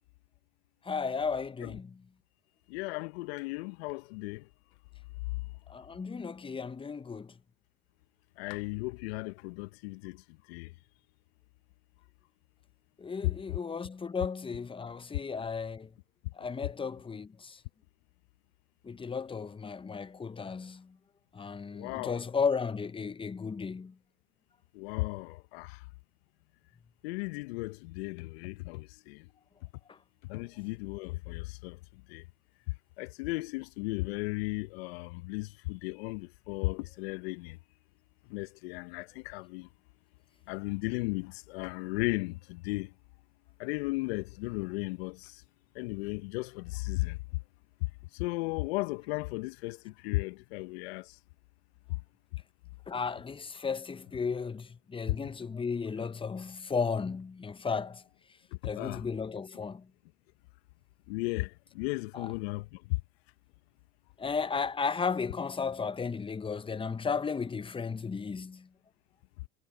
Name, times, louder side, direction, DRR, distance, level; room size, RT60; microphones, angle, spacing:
voice 1, 0.8-2.0 5.7-7.4 13.0-15.9 16.3-17.6 18.8-21.0 21.3-24.0 29.9-30.0 52.9-58.0 58.6-59.9 62.1-62.3 64.2-68.7, left 5 dB, 15° left, 1.0 m, -34 dB
voice 2, 2.7-4.5 8.4-10.2 10.5-10.7 21.7-22.2 24.7-25.8 27.0-29.3 30.3-31.8 32.1-32.2 33.0-37.6 38.3-39.7 40.5-42.9 43.6-45.4 45.7-47.4 48.1-51.2 51.9-52.0 55.1-55.2 58.7-59.0 61.1-63.0, left 24 dB, 65° left, 1.2 m, -35 dB
hypercardioid pair, 80°, 33 cm